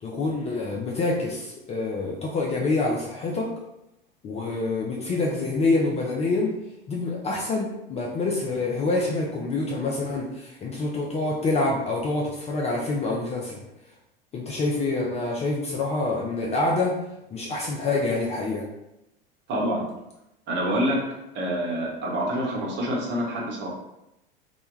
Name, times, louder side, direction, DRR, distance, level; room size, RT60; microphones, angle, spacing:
voice 1, 0.0-3.5 4.2-6.5 6.9-13.6 14.3-16.9 17.3-18.7, left 3 dB, 25° left, -2 dB, 0.4 m, -26 dB
voice 2, 19.5-19.9 20.5-21.0 21.3-23.7, equal, 40° right, -3 dB, 1.0 m, -26 dB
2.2 x 2.2 x 3.1 m, 0.87 s
hypercardioid pair, 80°, 29 cm